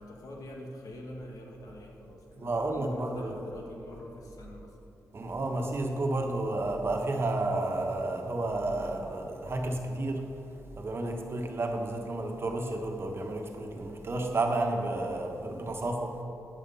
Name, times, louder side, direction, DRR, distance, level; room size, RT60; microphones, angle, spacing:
voice 1, 0.0-4.8, left 1 dB, 75° left, 0 dB, 1.7 m, -45 dB
voice 2, 2.4-3.5 5.1-16.2, right 2 dB, 40° right, 2 dB, 1.4 m, -31 dB
9.4 x 7.4 x 5.6 m, 2.7 s
cardioid pair, 80°, 6 cm